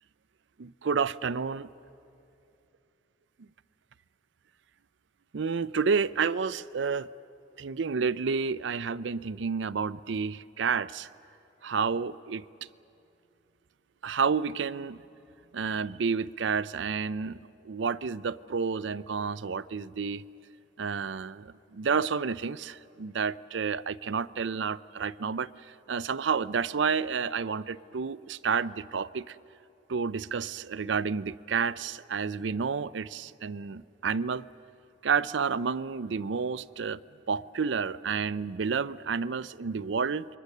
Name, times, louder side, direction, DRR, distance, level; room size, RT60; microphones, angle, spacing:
voice 1, 0.6-1.7 5.3-7.1 7.6-11.1 11.6-12.4 14.0-15.0 15.5-20.2 20.8-25.5 25.9-29.4 29.9-34.4 35.0-37.0 37.3-40.3, right 5 dB, 75° right, 17 dB, 0.5 m, -30 dB
28.5 x 23.5 x 6.7 m, 2.7 s
head